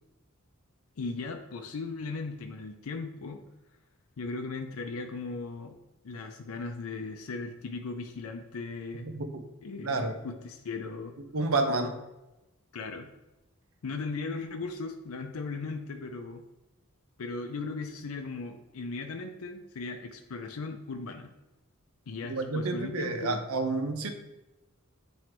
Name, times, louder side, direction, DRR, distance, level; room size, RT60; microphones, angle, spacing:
voice 1, 1.0-3.4 4.2-5.8 6.0-9.1 9.6-11.1 12.7-13.1 13.8-16.4 17.2-21.3 22.1-23.4, left 3 dB, 80° left, 5 dB, 0.5 m, -37 dB
voice 2, 9.8-10.2 11.3-12.0 22.3-24.1, right 3 dB, 85° right, 7 dB, 0.7 m, -29 dB
7.6 x 3.1 x 4.4 m, 1.0 s
head